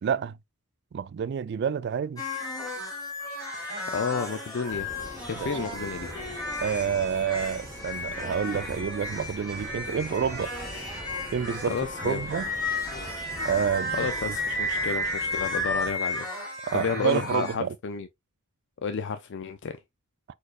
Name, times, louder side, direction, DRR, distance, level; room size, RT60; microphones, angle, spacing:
voice 1, 0.0-0.4 0.9-2.2 5.4-5.5 6.6-10.5 11.3-11.8 12.0-12.5 13.4-14.1 16.7-17.7, right 7 dB, 50° right, 0.3 m, -28 dB
sound 1, 2.2-17.5, left 1 dB, 20° left, 2.2 m, -33 dB
voice 2, 3.5-4.9 5.3-6.1 11.7-12.2 13.9-16.3 16.7-18.1 18.8-19.7, left 5 dB, 55° left, 0.5 m, -31 dB
sound 2, 4.7-15.9, right 1 dB, 15° right, 1.0 m, -43 dB
4.8 x 4.4 x 2.4 m
head